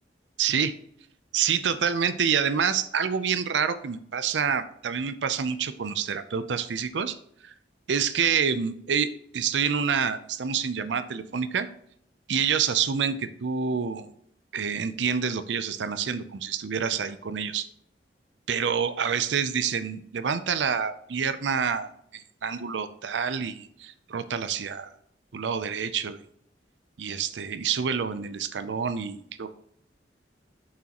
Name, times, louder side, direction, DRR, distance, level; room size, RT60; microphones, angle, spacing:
voice 1, 0.4-0.7 1.3-7.2 7.4-7.5 7.9-11.7 12.3-14.1 14.5-17.7 18.5-24.9 25.3-26.2 27.0-29.5, right 7 dB, 85° right, 12 dB, 0.5 m, -27 dB
7.1 x 6.2 x 2.9 m, 0.69 s
head